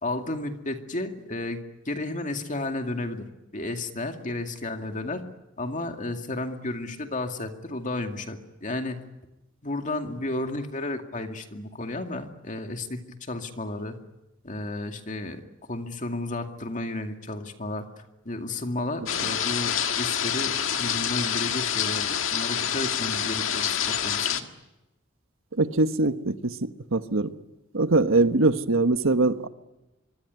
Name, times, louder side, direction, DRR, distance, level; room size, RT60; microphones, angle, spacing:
voice 1, 0.0-1.6 1.9-3.3 3.5-5.2 5.6-9.0 9.6-14.0 14.4-15.4 15.7-17.9 18.2-24.5, left 2 dB, 40° left, 5 dB, 2.3 m, -32 dB
sound 1, 19.1-24.4, left 9 dB, 80° left, 1.8 m, -27 dB
voice 2, 25.6-27.3 27.7-29.5, right 2 dB, 85° right, 10 dB, 1.3 m, -22 dB
25.0 x 23.5 x 9.5 m, 0.96 s
head